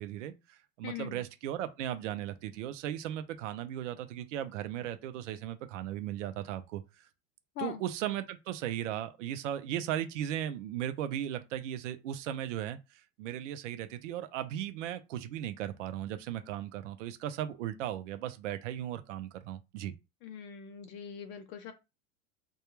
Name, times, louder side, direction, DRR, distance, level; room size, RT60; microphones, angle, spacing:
voice 1, 0.0-7.0 7.6-19.9, right 11 dB, 90° right, 0.5 m, -37 dB
voice 2, 0.8-1.2 7.6-7.8 20.2-21.7, left 8 dB, 35° left, 0.4 m, -41 dB
2.2 x 2.1 x 3.0 m
supercardioid pair, 135°, 36 cm